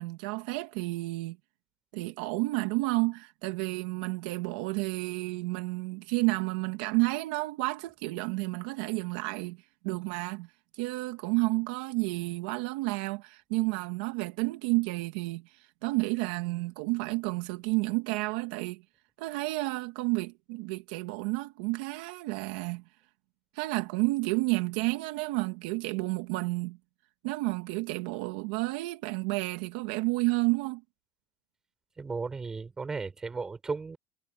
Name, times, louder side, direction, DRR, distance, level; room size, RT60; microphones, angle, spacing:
voice 1, 0.0-1.4 1.9-9.6 9.8-10.5 10.8-18.8 19.2-22.8 23.6-26.8 27.2-30.8, right 23 dB, 70° right, 1.9 m, -31 dB
voice 2, 32.0-34.0, right 4 dB, 10° right, 5.2 m, -35 dB
cardioid pair, 175°, 5 cm